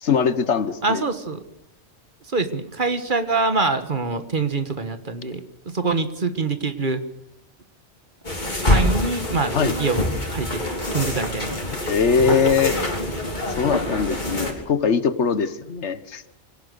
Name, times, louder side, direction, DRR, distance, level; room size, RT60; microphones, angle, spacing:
voice 1, 0.0-1.0 9.5-9.8 11.9-12.8 13.6-16.3, left 6 dB, 75° left, 13 dB, 1.4 m, -21 dB
voice 2, 0.8-1.4 2.3-5.4 5.7-7.0 8.6-10.0 10.3-10.6 10.9-11.6, right 3 dB, 45° right, 10 dB, 1.5 m, -24 dB
sound 1, 8.2-14.5, left 1 dB, 40° left, 3.5 m, -25 dB
24.5 x 17.5 x 6.7 m, 0.81 s
omnidirectional pair, 1.2 m